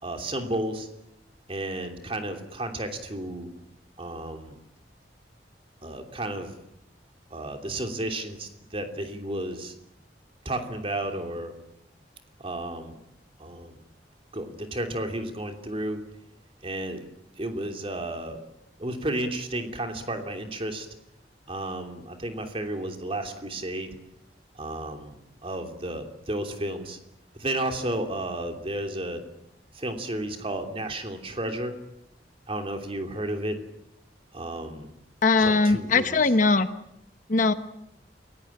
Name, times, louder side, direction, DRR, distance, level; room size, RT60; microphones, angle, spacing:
voice 1, 0.0-0.9 1.5-3.5 4.0-4.6 5.8-6.6 7.3-9.7 10.4-11.5 12.4-13.0 13.4-13.8 14.3-16.0 16.6-17.0 17.4-18.4 18.8-20.9 21.5-24.0 24.5-27.0 27.3-29.2 29.7-31.7 32.5-33.6 34.3-34.9 35.4-36.2, right 1 dB, 30° right, 5 dB, 3.1 m, -32 dB
voice 2, 35.2-36.7 37.3-37.5, left 3 dB, 45° left, 10 dB, 1.2 m, -20 dB
29.0 x 17.5 x 8.7 m, 0.81 s
head